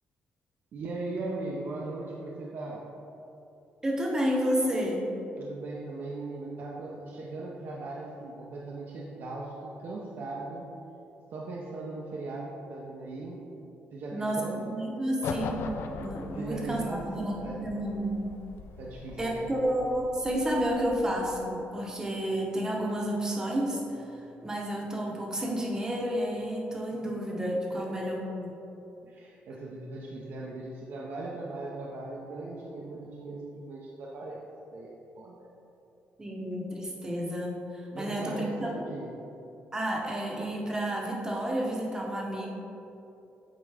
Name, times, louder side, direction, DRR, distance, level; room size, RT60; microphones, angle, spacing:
voice 1, 0.7-2.9 5.4-10.7 11.3-13.4 13.9-14.7 16.3-17.6 18.8-19.5 27.0-27.1 27.8-27.9 29.1-34.4 34.7-35.5 37.9-39.1, right 2 dB, 55° right, -3 dB, 0.6 m, -39 dB
voice 2, 3.8-5.0 14.1-18.4 19.2-28.6 36.2-38.8 39.7-42.5, equal, 15° right, -1 dB, 0.9 m, -31 dB
sound 1, 15.2-21.4, left 4 dB, 75° left, 0.4 m, -41 dB
8.8 x 3.7 x 3.4 m, 2.9 s
cardioid pair, 150°, 4 cm